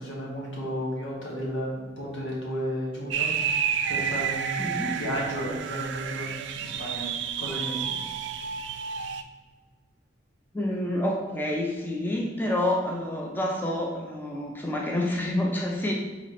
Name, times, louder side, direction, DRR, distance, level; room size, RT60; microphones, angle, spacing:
voice 1, 0.0-6.3 6.5-7.1 7.4-8.0, equal, 80° left, -4 dB, 1.4 m, -33 dB
sound 1, 3.1-9.2, right 7 dB, 70° right, 0.3 m, -30 dB
voice 2, 4.6-5.0 10.5-15.9, left 1 dB, 10° left, -1 dB, 0.5 m, -28 dB
4.0 x 3.1 x 4.0 m, 1.4 s
head